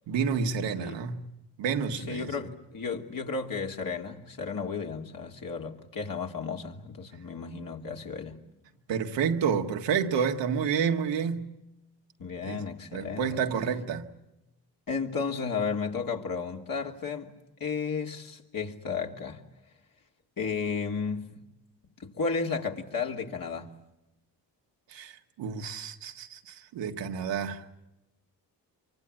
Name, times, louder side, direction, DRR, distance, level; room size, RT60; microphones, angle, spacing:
voice 1, 0.1-1.3 1.6-2.3 8.9-11.5 12.4-12.6 12.9-14.1 24.9-27.6, right 6 dB, 85° right, 1.7 m, -29 dB
voice 2, 1.9-8.4 12.2-13.3 14.9-17.3 17.6-19.4 20.4-21.4 22.0-23.7, left 5 dB, 50° left, 3.0 m, -33 dB
25.0 x 24.0 x 8.8 m
supercardioid pair, 60°, 42 cm